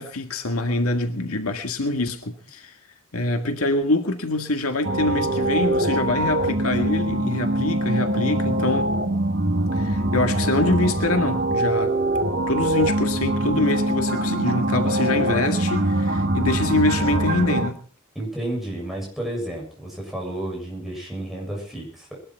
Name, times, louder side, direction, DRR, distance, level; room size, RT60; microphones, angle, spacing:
voice 1, 0.0-2.7 3.1-8.9 9.7-12.0 12.5-17.8, left 2 dB, 80° left, 6 dB, 1.9 m, -24 dB
sound 1, 4.8-17.7, right 1 dB, 50° right, 1.9 m, -23 dB
voice 2, 18.2-22.2, right 1 dB, ahead, -2 dB, 7.2 m, -31 dB
21.5 x 12.5 x 4.6 m, 0.43 s
head